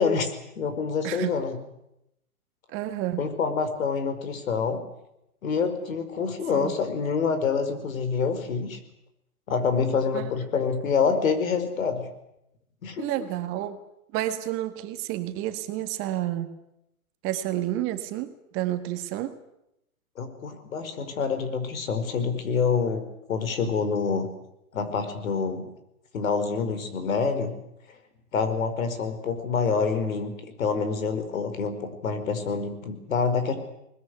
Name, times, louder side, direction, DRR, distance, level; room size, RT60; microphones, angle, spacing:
voice 1, 0.0-1.6 3.2-4.8 5.4-8.8 9.5-12.1 12.8-13.1 20.2-24.3 24.7-25.7 26.1-27.6 28.3-30.3 30.6-33.5, left 5 dB, 65° left, 9 dB, 5.1 m, -26 dB
voice 2, 2.7-3.2 6.5-6.7 10.1-10.3 13.0-13.8 14.1-16.5 17.2-19.4, right 13 dB, 30° right, 8 dB, 1.8 m, -30 dB
21.0 x 20.5 x 9.7 m, 0.83 s
hypercardioid pair, 135°, 43 cm